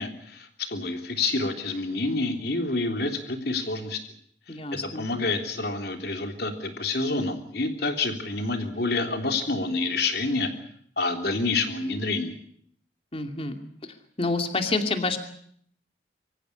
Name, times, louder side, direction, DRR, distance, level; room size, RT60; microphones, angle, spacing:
voice 1, 0.0-4.0 5.0-10.5 11.0-12.4, left 3 dB, 60° left, 5 dB, 3.5 m, -28 dB
voice 2, 4.5-5.1 13.1-13.6 14.2-15.2, left 3 dB, 30° left, 6 dB, 2.6 m, -28 dB
25.0 x 15.0 x 10.0 m, 0.65 s
head